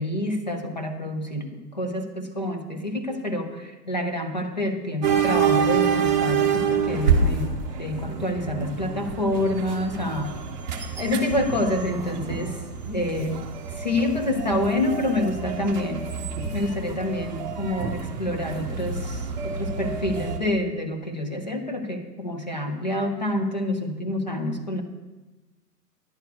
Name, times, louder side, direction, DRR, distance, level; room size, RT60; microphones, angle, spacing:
voice 1, 0.0-10.3 11.0-16.1 16.5-24.8, left 1 dB, 30° left, 4 dB, 0.4 m, -27 dB
sound 1, 5.0-20.4, right 6 dB, 25° right, 0.8 m, -27 dB
10.5 x 4.4 x 7.9 m, 1.2 s
hypercardioid pair, 150°, 49 cm